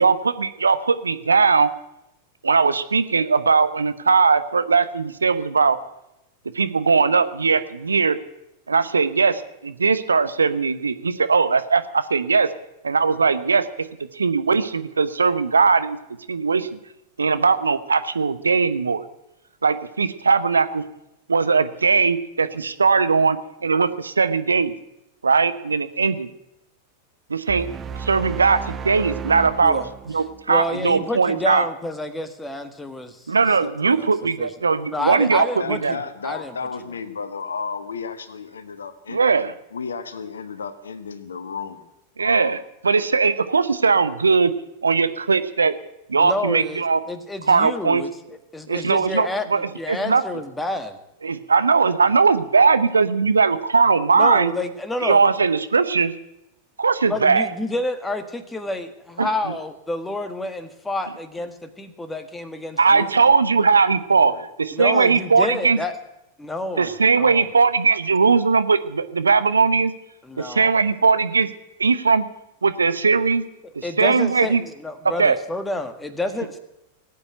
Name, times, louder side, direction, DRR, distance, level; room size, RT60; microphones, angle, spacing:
voice 1, 0.0-1.7 2.4-5.8 6.5-8.2 8.7-12.5 12.8-13.6 14.1-16.0 16.3-16.8 17.2-19.0 19.6-20.8 21.3-23.4 23.6-24.7 25.2-26.3 27.3-27.7 28.0-31.7 33.3-36.0 39.1-39.5 42.2-42.6 42.8-44.5 44.8-45.7 46.1-47.0 47.5-48.0 48.7-50.2 51.2-54.5 55.0-56.1 56.8-57.5 59.2-59.3 62.8-64.3 64.6-65.8 66.8-69.9 70.4-71.5 71.8-72.2 72.6-73.4 73.8-74.6 75.2-75.4, right 5 dB, 75° right, 12 dB, 0.8 m, -19 dB
sound 1, 27.5-30.8, right 6 dB, 25° right, 0.6 m, -33 dB
voice 2, 30.5-33.3 33.6-34.1 34.4-34.5 34.9-36.0 36.2-36.5 46.2-51.0 54.1-55.2 57.1-63.1 64.7-65.9 66.4-67.5 70.2-70.7 73.6-76.6, left 2 dB, 10° left, 8 dB, 1.6 m, -29 dB
voice 3, 35.6-39.2 39.7-41.9 42.2-42.5 64.2-64.5, left 5 dB, 70° left, 11 dB, 1.3 m, -33 dB
18.0 x 8.6 x 8.9 m, 0.88 s
figure-of-eight pair, 90°, 0 cm